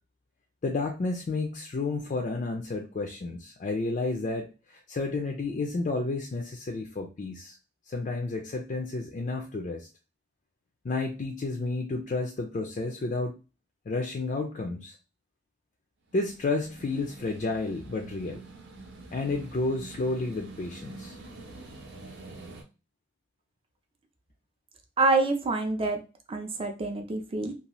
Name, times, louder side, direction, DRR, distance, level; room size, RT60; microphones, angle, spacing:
voice 1, 0.6-7.6 7.9-9.9 10.8-13.4 13.9-15.0 16.1-18.4 19.1-21.1, left 3 dB, 40° left, 3 dB, 0.4 m, -31 dB
sound 1, 16.1-22.6, right 3 dB, 65° right, 0.7 m, -46 dB
voice 2, 25.0-26.0 26.3-27.5, right 3 dB, 30° right, 4 dB, 0.5 m, -26 dB
2.7 x 2.4 x 3.0 m, 0.31 s
head